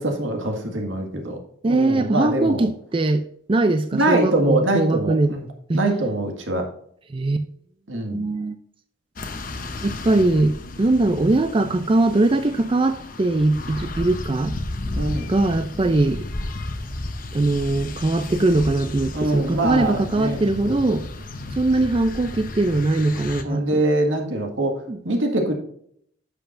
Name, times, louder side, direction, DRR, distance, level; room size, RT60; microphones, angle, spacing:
voice 1, 0.0-1.4 1.7-2.6 3.9-5.5 5.7-6.7 7.9-8.2 15.0-15.3 19.1-20.8 23.4-25.5, right 1 dB, 85° right, 3 dB, 1.9 m, -23 dB
voice 2, 1.6-5.4 5.7-5.8 7.1-7.4 8.1-8.6 9.8-14.5 15.3-16.3 17.3-21.1 21.6-23.8 24.9-25.0, right 2 dB, 25° right, 9 dB, 0.4 m, -21 dB
sound 1, 9.2-23.4, left 2 dB, 45° left, 0.9 m, -33 dB
10.5 x 6.9 x 2.6 m, 0.66 s
head